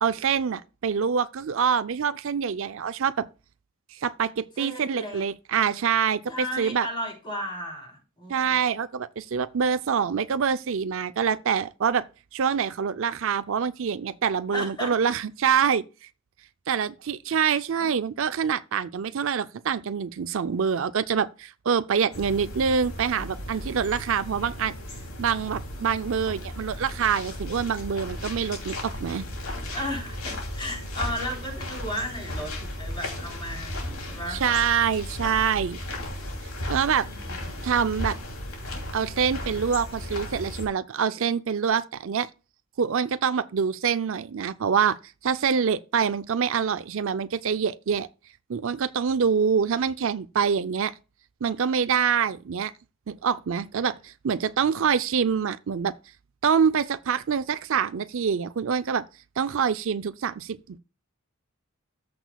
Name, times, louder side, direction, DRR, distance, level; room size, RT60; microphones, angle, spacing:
voice 1, 0.0-3.3 3.9-6.9 8.3-12.1 12.3-15.8 16.7-24.7 25.2-29.2 34.3-35.8 36.7-37.1 37.6-38.2 38.9-42.3 42.8-45.0 45.2-48.1 48.5-50.9 51.4-52.7 53.1-55.9 56.4-59.0 59.4-60.8, right 7 dB, 65° right, 0.5 m, -25 dB
voice 2, 4.6-5.2 6.3-8.6 14.5-14.9 17.8-17.9 29.7-34.4 37.0-37.7, equal, 25° left, 3.6 m, -35 dB
sound 1, 22.1-40.7, left 1 dB, 80° left, 2.8 m, -35 dB
14.0 x 6.1 x 2.3 m
head